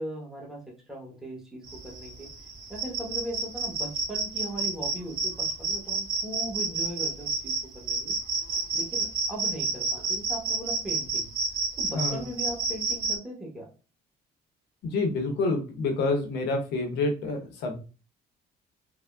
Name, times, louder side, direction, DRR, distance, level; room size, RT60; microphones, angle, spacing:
voice 1, 0.0-2.3 2.7-8.1 8.7-11.3 11.8-13.7, right 1 dB, 5° right, -3 dB, 1.0 m, -39 dB
sound 1, 1.7-13.1, right 3 dB, 60° right, 1.3 m, -30 dB
voice 2, 14.8-17.8, left 3 dB, 80° left, 4 dB, 0.8 m, -28 dB
3.4 x 2.1 x 2.2 m, 0.34 s
cardioid pair, 110°, 17 cm